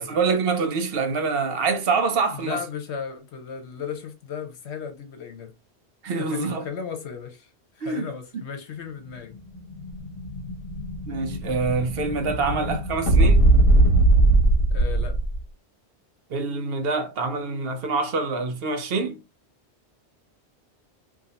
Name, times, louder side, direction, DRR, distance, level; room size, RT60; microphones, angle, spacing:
voice 1, 0.0-2.6 6.0-6.7 7.8-8.1 11.1-13.5 16.3-19.2, right 4 dB, 65° right, 0.8 m, -25 dB
voice 2, 2.3-5.5 6.2-7.5 7.7-9.4 14.7-15.2, left 6 dB, 75° left, 1.1 m, -35 dB
Explosion, 9.3-15.4, right 2 dB, 55° left, 1.4 m, -20 dB
2.8 x 2.7 x 3.9 m
omnidirectional pair, 1.1 m